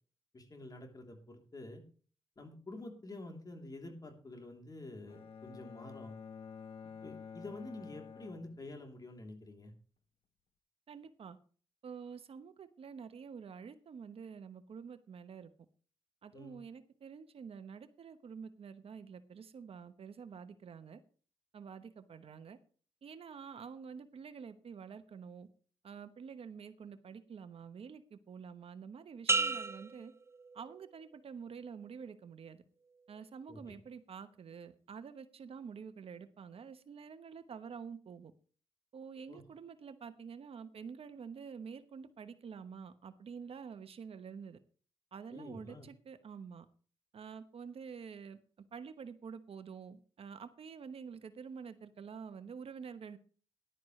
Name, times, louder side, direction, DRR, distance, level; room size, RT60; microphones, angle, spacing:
voice 1, 0.3-1.8 2.4-6.1 7.0-9.7 16.3-16.6 33.5-33.8 39.3-39.4 45.3-45.9, left 2 dB, 40° left, 3 dB, 3.2 m, -48 dB
Bowed string instrument, 5.1-9.2, left 6 dB, 65° left, 1.3 m, -50 dB
voice 2, 10.9-11.4 11.8-15.5 16.2-21.0 21.5-22.6 23.0-25.5 25.8-30.1 30.5-32.6 33.1-38.3 38.9-44.6 45.1-46.7 47.1-48.4 48.7-53.2, right 6 dB, 70° right, 11 dB, 1.0 m, -48 dB
sound 1, 29.3-31.1 31.6-32.0, right 3 dB, 25° right, 0.4 m, -35 dB
14.0 x 11.0 x 3.2 m, 0.41 s
cardioid pair, 65°, 10 cm